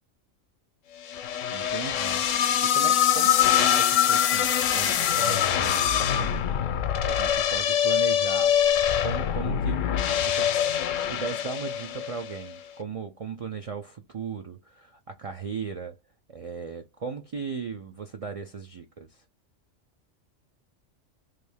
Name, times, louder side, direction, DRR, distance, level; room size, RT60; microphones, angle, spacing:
sound 1, 1.1-12.4, left 9 dB, 85° left, 1.0 m, -24 dB
voice 1, 1.5-2.3 2.6-6.3 7.0-8.5 9.0-10.5 11.1-16.0 16.3-19.2, right 5 dB, 65° right, 0.3 m, -37 dB
3.3 x 2.6 x 3.4 m
omnidirectional pair, 1.3 m